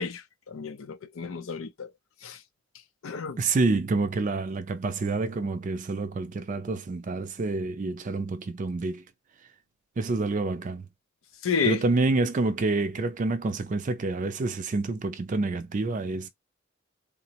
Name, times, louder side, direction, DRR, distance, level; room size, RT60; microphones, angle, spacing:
voice 1, 0.0-1.9 2.2-2.4 3.0-3.4 11.4-11.8, left 5 dB, 80° left, 0.5 m, -30 dB
voice 2, 3.4-9.0 10.0-10.9 11.6-16.3, right 3 dB, 40° right, 0.4 m, -28 dB
3.6 x 2.0 x 2.8 m
head